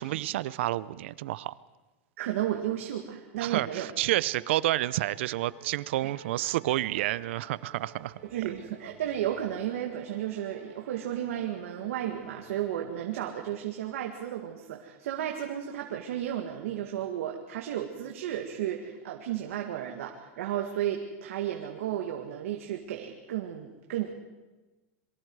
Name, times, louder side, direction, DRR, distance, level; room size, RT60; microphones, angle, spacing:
voice 1, 0.0-1.5 3.4-8.2, right 15 dB, 60° right, 19 dB, 0.6 m, -29 dB
voice 2, 2.2-3.9 6.0-6.1 8.2-24.1, right 11 dB, 90° right, 2 dB, 2.0 m, -33 dB
Musical instrument, 3.0-12.8, right 5 dB, 40° right, 4.7 m, -55 dB
27.0 x 23.0 x 4.8 m, 1.2 s
supercardioid pair, 180°, 7 cm